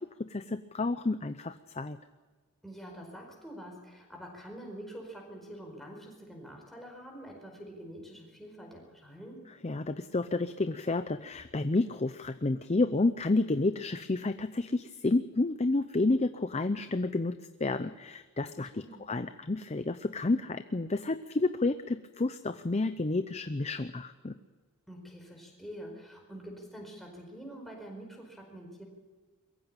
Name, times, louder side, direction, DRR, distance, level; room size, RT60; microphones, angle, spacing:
voice 1, 0.2-2.0 9.6-24.4, left 2 dB, 30° left, 11 dB, 0.6 m, -30 dB
voice 2, 2.6-9.4 18.4-19.1 24.9-28.8, equal, ahead, 0 dB, 4.8 m, -46 dB
22.5 x 15.0 x 9.0 m, 1.4 s
head